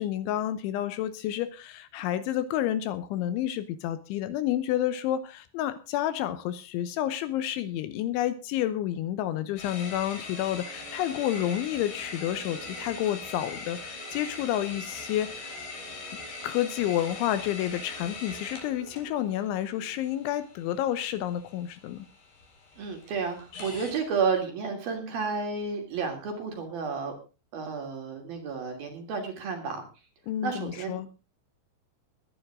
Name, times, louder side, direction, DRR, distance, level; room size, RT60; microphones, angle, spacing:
voice 1, 0.0-15.6 16.4-22.1 30.3-31.1, left 12 dB, 75° left, 13 dB, 3.1 m, -30 dB
sound 1, 9.6-24.1, left 4 dB, 55° left, 6.0 m, -42 dB
sound 2, 10.2-20.4, right 9 dB, 75° right, 5.2 m, -51 dB
voice 2, 22.8-27.1 27.5-29.8 30.4-31.0, right 5 dB, 50° right, 4 dB, 4.4 m, -31 dB
21.0 x 10.5 x 3.7 m, 0.31 s
omnidirectional pair, 5.8 m